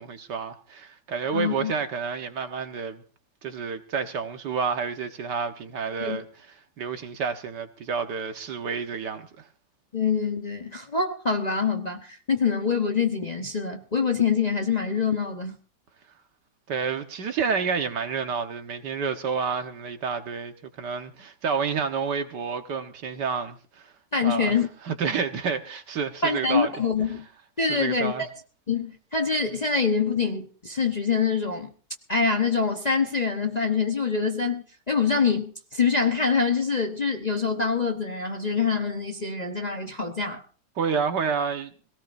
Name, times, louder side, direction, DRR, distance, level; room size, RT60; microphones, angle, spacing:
voice 1, 0.0-3.0 3.4-9.5 16.7-23.9 24.2-24.6 24.9-27.1 27.6-28.3 40.8-41.7, right 5 dB, 70° right, 1.9 m, -29 dB
voice 2, 1.3-1.7 6.0-6.2 9.9-15.6 24.1-24.7 26.2-27.2 27.6-28.3 28.7-31.7 32.1-40.4, left 5 dB, 30° left, 0.9 m, -25 dB
22.0 x 17.5 x 2.6 m
omnidirectional pair, 1.9 m